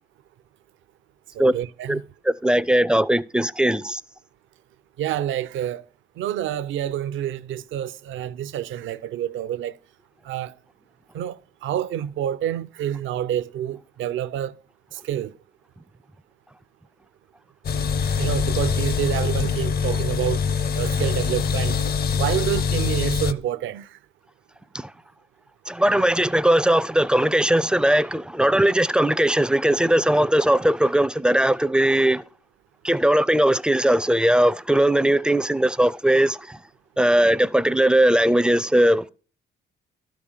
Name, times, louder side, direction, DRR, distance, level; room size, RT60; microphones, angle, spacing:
voice 1, 1.3-2.1 5.0-5.8 6.2-9.8 10.2-10.5 11.1-14.5 14.9-15.3 18.0-20.4 20.7-21.8 22.1-24.0, right 11 dB, 80° right, 0.6 m, -28 dB
voice 2, 2.3-4.0 25.7-32.2 32.8-36.4 37.0-39.1, right 1 dB, 5° right, 0.4 m, -19 dB
sound 1, 17.6-23.3, left 6 dB, 50° left, 0.7 m, -24 dB
12.5 x 5.1 x 7.3 m
cardioid pair, 90°, 20 cm